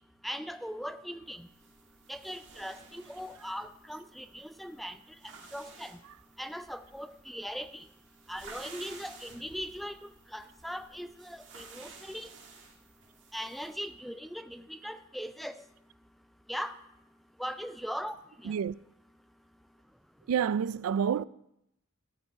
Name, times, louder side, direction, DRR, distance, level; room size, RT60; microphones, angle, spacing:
voice 1, 0.2-1.5 2.1-5.0 5.5-6.0 6.4-7.8 8.3-12.3 13.3-15.6 16.5-16.8 17.4-18.1 18.4-18.5 21.2-21.3, equal, ahead, 0.4 m, -39 dB
sound 1, 1.3-13.9, right 4 dB, 55° right, 2.1 m, -54 dB
voice 2, 18.4-18.8 20.3-21.2, right 7 dB, 80° right, 0.3 m, -29 dB
13.5 x 5.5 x 8.9 m
head